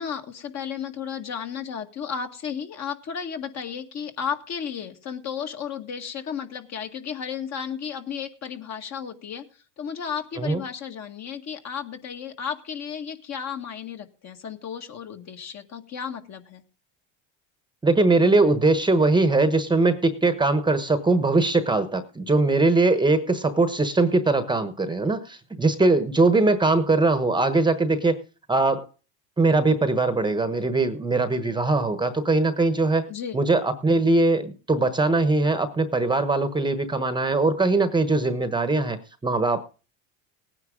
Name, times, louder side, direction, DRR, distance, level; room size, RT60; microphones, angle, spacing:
voice 1, 0.0-9.4 9.8-16.6 33.1-33.4, left 7 dB, 45° left, 5 dB, 2.0 m, -33 dB
voice 2, 17.8-28.2 28.5-28.9 29.4-33.1 33.3-39.6, right 3 dB, 10° right, 11 dB, 1.1 m, -21 dB
18.0 x 9.7 x 3.8 m, 0.35 s
supercardioid pair, 120°, 37 cm